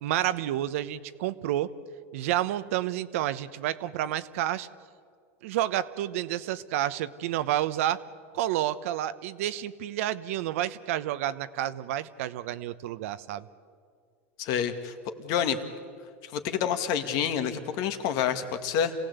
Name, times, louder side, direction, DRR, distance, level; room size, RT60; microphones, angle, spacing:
voice 1, 0.0-1.7 2.1-4.7 5.4-8.0 8.3-13.5, right 13 dB, 75° right, 13 dB, 1.0 m, -30 dB
voice 2, 14.4-14.9 15.2-15.6 16.2-18.9, left 8 dB, 60° left, 7 dB, 2.1 m, -28 dB
27.5 x 17.5 x 8.2 m, 2.1 s
supercardioid pair, 120°, 7 cm